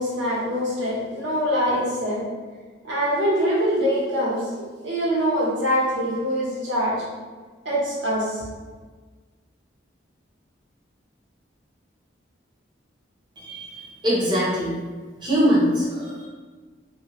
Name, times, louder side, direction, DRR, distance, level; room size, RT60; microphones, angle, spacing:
voice 1, 0.0-2.2 2.8-6.9 7.6-8.4, equal, 70° right, -6 dB, 1.0 m, -24 dB
voice 2, 13.4-14.8 15.2-16.3, equal, 25° right, -6 dB, 0.7 m, -22 dB
2.8 x 2.4 x 3.0 m, 1.4 s
head